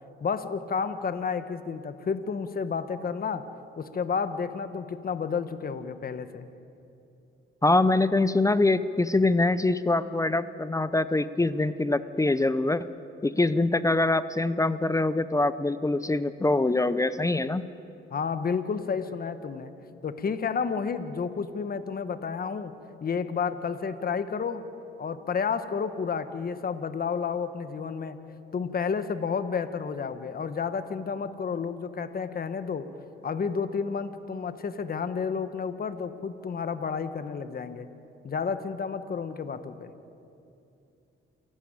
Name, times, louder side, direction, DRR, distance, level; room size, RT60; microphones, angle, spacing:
voice 1, 0.2-3.5 3.8-6.5 18.1-19.7 20.0-22.7 23.0-24.6 25.0-28.2 28.5-32.9 33.2-37.9 38.2-39.9, left 6 dB, 45° left, 10 dB, 1.2 m, -31 dB
voice 2, 7.6-12.9 13.2-17.6, left 2 dB, 15° left, 14 dB, 0.6 m, -24 dB
28.0 x 12.0 x 8.9 m, 2.7 s
cardioid pair, 90°, 21 cm